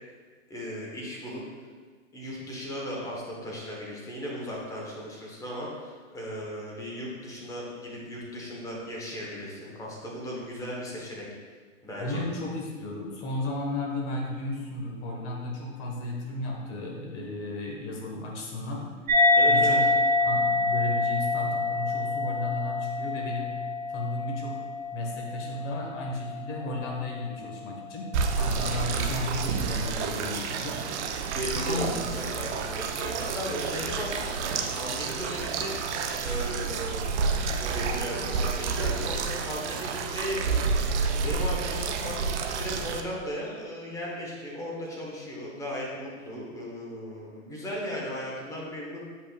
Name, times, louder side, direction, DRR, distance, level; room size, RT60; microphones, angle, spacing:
voice 1, 0.5-1.4 2.1-11.3 11.8-12.2 19.3-19.8 31.3-40.9 41.2-49.0, equal, 10° left, -4 dB, 1.2 m, -36 dB
voice 2, 12.0-18.8 19.5-19.8 20.2-23.5 23.9-24.6 24.9-28.1 28.4-31.9, left 2 dB, 30° left, -1 dB, 1.5 m, -34 dB
sound 1, 19.1-26.0, left 3 dB, 70° right, 1.8 m, -25 dB
sound 2, 28.1-43.0, right 5 dB, 55° right, 0.7 m, -29 dB
8.2 x 5.5 x 2.4 m, 1.5 s
hypercardioid pair, 135°, 40 cm